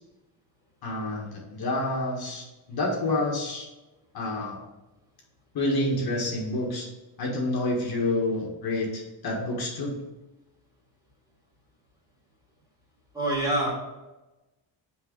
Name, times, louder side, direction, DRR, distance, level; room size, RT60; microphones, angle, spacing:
voice 1, 0.8-3.7 4.1-4.6 5.5-6.9 7.2-10.0, left 2 dB, 55° left, -1 dB, 1.7 m, -28 dB
voice 2, 13.1-13.7, right 1 dB, 10° right, -4 dB, 2.4 m, -25 dB
6.3 x 4.7 x 5.2 m, 1.1 s
cardioid pair, 140°, 45 cm